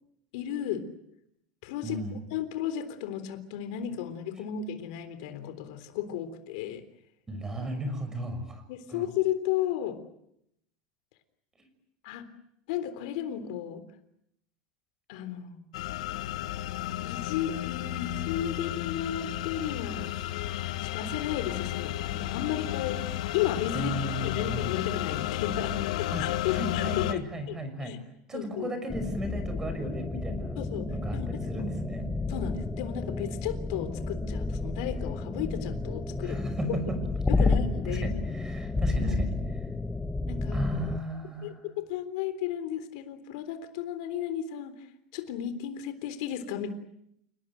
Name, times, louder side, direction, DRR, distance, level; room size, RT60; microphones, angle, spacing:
voice 1, 0.3-0.9 1.6-2.0 2.3-6.8 8.7-10.0 12.0-12.3 12.7-13.8 15.1-15.6 17.0-20.1 20.8-23.0 23.3-27.2 27.5-28.0 28.3-28.7 30.6-31.5 32.3-36.4 36.7-36.8 37.3-38.1 39.0-39.3 40.3-40.6 41.4-44.9 45.1-46.7, left 10 dB, 70° left, 10 dB, 3.7 m, -34 dB
voice 2, 1.8-2.2 7.3-8.6 8.9-9.1 23.7-24.8 26.1-28.0 28.3-30.6 30.9-32.1 36.2-37.0 37.4-37.6 37.9-39.3 40.5-41.6, right 1 dB, 15° right, 10 dB, 6.0 m, -35 dB
sound 1, 15.7-27.1, left 14 dB, 85° left, 1.7 m, -32 dB
sound 2, 28.9-41.0, left 3 dB, 10° left, 1.3 m, -31 dB
29.5 x 19.0 x 9.2 m, 0.77 s
supercardioid pair, 140°, 4 cm